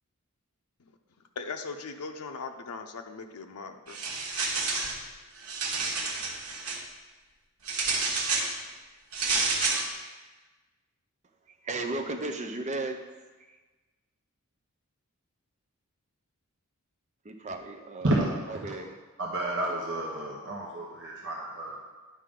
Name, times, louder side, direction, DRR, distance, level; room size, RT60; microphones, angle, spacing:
voice 1, 1.4-4.0, left 4 dB, 90° left, 5 dB, 0.6 m, -39 dB
sound 1, 3.9-5.0 5.4-6.8 7.7-8.5 9.1-9.9, right 3 dB, 90° right, 1.3 m, -29 dB
voice 2, 11.6-13.0 13.4-13.5 17.2-18.1 18.5-19.0, right 2 dB, 30° right, 5 dB, 0.7 m, -35 dB
voice 3, 18.0-18.6 19.2-21.8, right 1 dB, 55° right, -3 dB, 1.1 m, -30 dB
10.0 x 5.7 x 3.7 m, 1.3 s
head